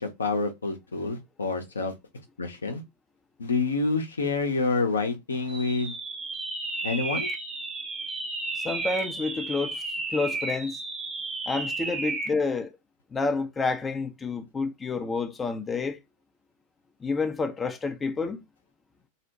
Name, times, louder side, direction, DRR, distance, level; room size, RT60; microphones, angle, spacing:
voice 1, 0.0-1.9 2.4-2.8 3.4-5.9 6.8-7.3, left 3 dB, 75° left, 0.6 m, -28 dB
sound 1, 5.5-12.4, right 3 dB, 20° right, 0.7 m, -33 dB
voice 2, 8.6-9.8 10.1-10.8 11.5-12.7 13.1-16.0 17.0-18.4, left 4 dB, 15° left, 0.4 m, -29 dB
2.7 x 2.1 x 2.8 m
figure-of-eight pair, 90°, 0 cm